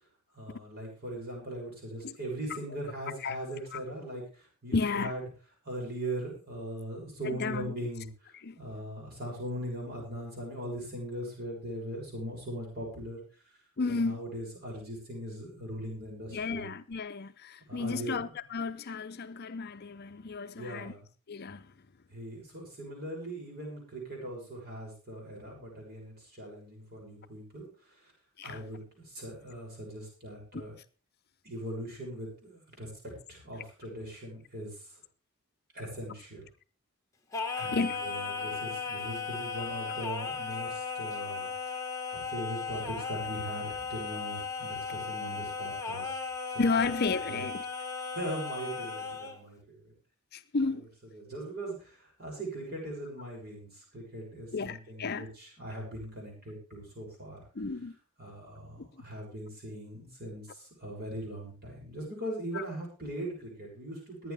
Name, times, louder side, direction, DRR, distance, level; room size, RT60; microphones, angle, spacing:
voice 1, 0.3-5.2 5.6-13.2 14.0-16.7 17.7-18.3 20.6-21.0 22.1-28.1 28.4-30.7 31.4-35.0 35.7-36.4 37.5-41.5 42.1-46.2 46.5-46.9 47.3-47.5 48.1-49.9 51.1-57.4 58.2-64.3, right 1 dB, 45° right, 6.8 m, -40 dB
voice 2, 4.7-5.1 7.2-7.7 8.4-8.6 13.8-14.2 16.3-20.9 21.3-21.7 28.4-28.6 30.5-30.6 37.7-38.0 46.6-47.6 50.3-50.9 54.5-55.3 57.6-57.9 58.8-58.9 62.5-62.6, left 4 dB, 45° left, 0.6 m, -32 dB
Singing, 37.3-49.4, left 5 dB, 15° left, 1.5 m, -36 dB
21.5 x 9.3 x 3.5 m
head